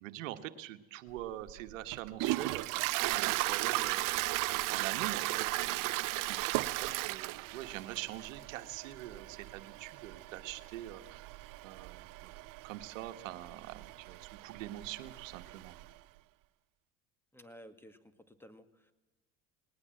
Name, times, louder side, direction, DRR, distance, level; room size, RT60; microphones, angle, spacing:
voice 1, 0.0-4.2 4.7-11.3 11.6-12.3 12.6-15.7, right 14 dB, 80° right, 9 dB, 1.4 m, -44 dB
Toilet flush, 1.2-15.9, right 19 dB, 55° right, 0.8 m, -36 dB
voice 2, 17.3-18.9, equal, 5° left, 11 dB, 2.1 m, -55 dB
20.0 x 19.5 x 7.7 m, 1.0 s
supercardioid pair, 90°, 38 cm